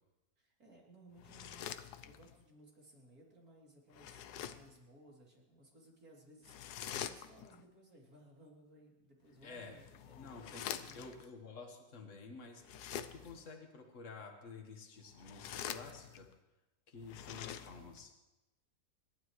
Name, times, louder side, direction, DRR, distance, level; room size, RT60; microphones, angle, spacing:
voice 1, 0.4-1.7 2.0-11.3, right 1 dB, 65° right, -3 dB, 3.7 m, -61 dB
sound 1, 1.2-2.4 3.9-4.8 6.4-7.6 9.4-11.3 12.6-13.5 15.1-16.3 17.0-18.1, left 10 dB, 80° left, 1.2 m, -46 dB
voice 2, 9.4-9.7 10.2-12.6 13.1-16.3 16.9-18.1, left 4 dB, 50° left, 2 dB, 1.9 m, -51 dB
26.5 x 12.0 x 3.2 m, 1.0 s
omnidirectional pair, 1.7 m